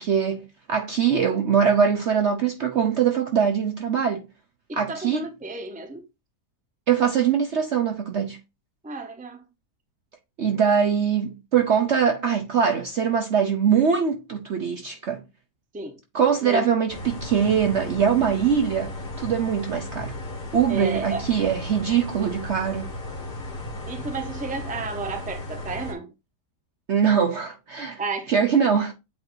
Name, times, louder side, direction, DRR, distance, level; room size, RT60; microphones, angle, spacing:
voice 1, 0.0-4.3 4.8-5.3 6.9-8.4 10.4-15.2 16.1-20.1 20.5-22.9 26.9-28.0 28.3-28.9, right 7 dB, 55° right, 0.8 m, -22 dB
voice 2, 4.7-6.0 8.8-9.4 15.7-16.0 16.4-16.7 20.7-21.3 23.9-26.1 28.0-28.3, right 3 dB, 10° right, 0.6 m, -32 dB
sound 1, 16.9-25.9, left 1 dB, 50° left, 2.5 m, -35 dB
8.4 x 4.5 x 2.6 m
omnidirectional pair, 1.8 m